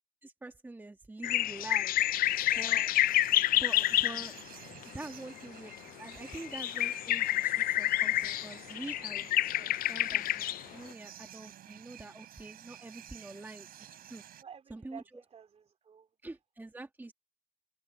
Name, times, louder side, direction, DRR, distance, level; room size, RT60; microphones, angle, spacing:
voice 1, 0.2-2.1 2.5-2.8 3.5-4.3 4.9-5.7 6.0-9.3 9.9-10.4 10.7-14.2 14.7-15.0 16.2-17.1, right 2 dB, 10° right, 1.5 m, -45 dB
sound 1, 1.2-4.3 4.8-4.9 5.7-5.8 6.1-10.6, left 14 dB, 60° left, 0.4 m, -28 dB
sound 2, 2.2-14.4, right 11 dB, 60° right, 5.0 m, -52 dB
voice 2, 2.4-2.9 9.5-9.8 14.4-16.1, right 8 dB, 40° right, 2.7 m, -52 dB
cardioid pair, 110°, 17 cm